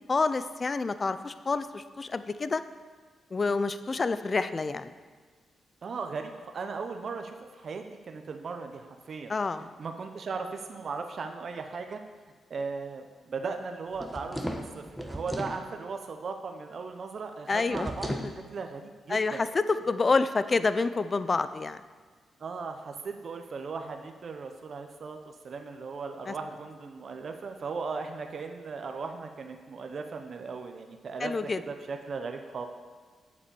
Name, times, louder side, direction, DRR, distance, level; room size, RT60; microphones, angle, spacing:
voice 1, 0.1-2.6 3.3-4.9 9.3-9.7 17.5-17.9 19.1-21.8 26.3-26.4 31.2-31.6, left 4 dB, 40° left, 12 dB, 0.6 m, -28 dB
voice 2, 5.8-12.0 12.5-18.1 18.5-19.4 22.4-25.2 25.4-32.7, right 4 dB, 55° right, 5 dB, 0.8 m, -37 dB
sound 1, 13.9-15.6 17.7-18.3, equal, ahead, 1.2 m, -35 dB
8.5 x 7.3 x 6.9 m, 1.5 s
cardioid pair, 70°, 0 cm